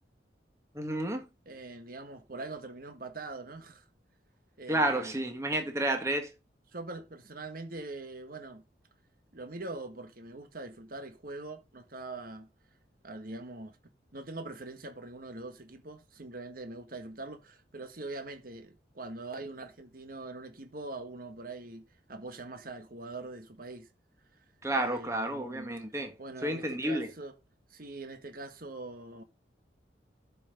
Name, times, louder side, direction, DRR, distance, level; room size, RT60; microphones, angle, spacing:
voice 1, 0.8-1.2 4.7-6.3 24.6-26.1 26.4-27.1, right 1 dB, 15° right, 1.8 m, -30 dB
voice 2, 1.4-3.8 4.6-5.2 6.7-8.6 9.3-12.5 13.0-13.8 14.1-23.9 24.7-25.7 26.2-27.3 27.7-29.2, right 2 dB, 50° right, 1.5 m, -43 dB
12.0 x 5.9 x 3.8 m
head